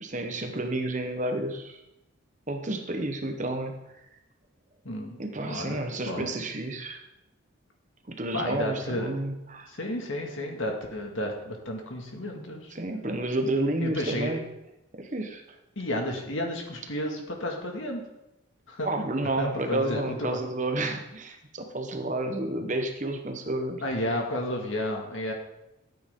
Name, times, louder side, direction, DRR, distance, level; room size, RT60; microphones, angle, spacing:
voice 1, 0.0-1.8 2.5-3.8 5.2-7.0 8.1-9.7 12.7-14.4 14.9-15.4 18.8-23.8, right 2 dB, 35° right, 5 dB, 1.1 m, -30 dB
voice 2, 4.8-6.3 8.3-9.1 9.7-12.7 13.8-14.4 15.8-18.0 18.7-18.9 19.4-20.4 23.8-25.3, left 1 dB, 65° left, 1 dB, 2.1 m, -32 dB
14.0 x 8.8 x 3.8 m, 0.91 s
head